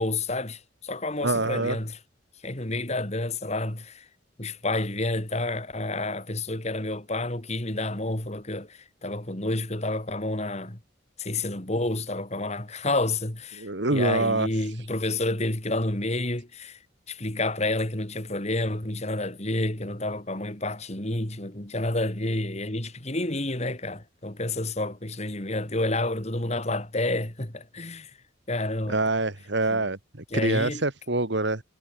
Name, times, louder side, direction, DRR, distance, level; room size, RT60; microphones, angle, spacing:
voice 1, 0.0-2.0 2.4-4.1 4.4-10.8 11.2-16.8 17.1-28.1 28.5-29.0 29.7-29.9 30.3-30.8, left 2 dB, 35° left, 3.0 m, -29 dB
voice 2, 1.2-1.8 13.6-14.5 28.9-31.6, right 2 dB, 65° right, 2.3 m, -26 dB
head